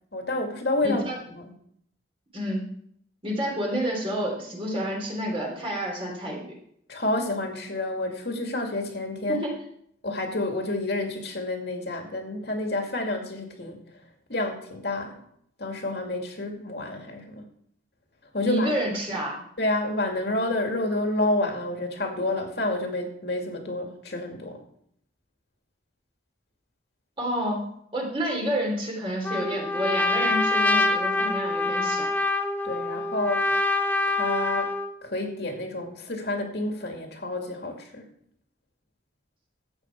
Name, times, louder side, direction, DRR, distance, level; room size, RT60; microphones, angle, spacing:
voice 1, 0.1-1.0 1.3-1.5 6.9-9.4 10.0-13.8 14.3-15.1 15.6-17.4 18.3-18.9 19.6-24.6 32.6-33.5 34.1-34.7 35.0-38.0, left 2 dB, 55° left, 2 dB, 2.4 m, -29 dB
voice 2, 0.8-1.1 2.3-2.7 3.2-6.5 9.3-9.5 18.4-19.3 27.2-27.6 27.9-32.1, equal, 30° right, -1 dB, 3.2 m, -29 dB
Trumpet, 29.2-34.9, left 2 dB, 10° left, 0.8 m, -25 dB
14.0 x 8.6 x 4.6 m, 0.69 s
head